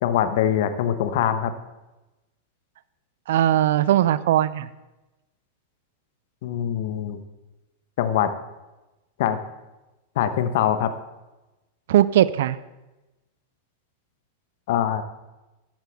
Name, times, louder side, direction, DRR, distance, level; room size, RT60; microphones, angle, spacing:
voice 1, 0.0-1.5 6.4-7.2 8.0-8.3 9.2-9.4 10.2-10.9 14.7-15.0, left 10 dB, 60° left, 11 dB, 1.0 m, -23 dB
voice 2, 3.3-4.7 11.9-12.6, right 12 dB, 65° right, 17 dB, 0.5 m, -19 dB
13.5 x 10.5 x 3.6 m, 1.1 s
figure-of-eight pair, 95°, 0 cm